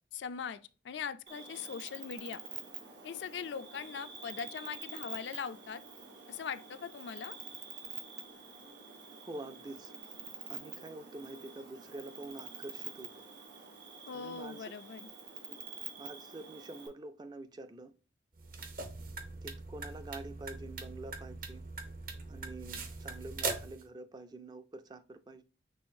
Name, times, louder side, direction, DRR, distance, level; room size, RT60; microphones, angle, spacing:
voice 1, 0.1-0.6 0.8-2.4 3.0-5.8 6.3-7.4 14.1-15.1, left 6 dB, 75° left, 0.4 m, -41 dB
Cricket, 1.3-16.9, right 6 dB, 85° right, 1.4 m, -47 dB
voice 2, 9.2-9.9 10.5-13.2 14.1-14.7 15.5-15.6 16.0-17.9 19.4-21.6 22.3-25.4, right 2 dB, 25° right, 0.4 m, -47 dB
sound 1, 18.4-23.8, right 3 dB, 50° right, 0.7 m, -41 dB
6.2 x 3.1 x 2.6 m
head